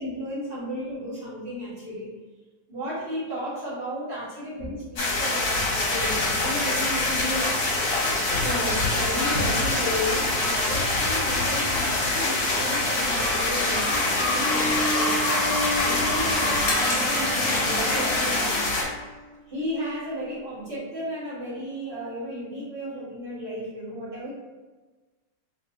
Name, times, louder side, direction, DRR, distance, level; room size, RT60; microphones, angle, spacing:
voice 1, 0.0-2.1 2.7-7.5 8.3-15.1 15.4-18.7 19.5-24.3, equal, 30° right, -10 dB, 1.7 m, -33 dB
sound 1, 5.0-18.8, left 2 dB, 55° left, 1.1 m, -24 dB
Bowed string instrument, 14.3-19.4, left 1 dB, 75° left, 1.1 m, -33 dB
3.4 x 2.9 x 2.8 m, 1.3 s
omnidirectional pair, 2.0 m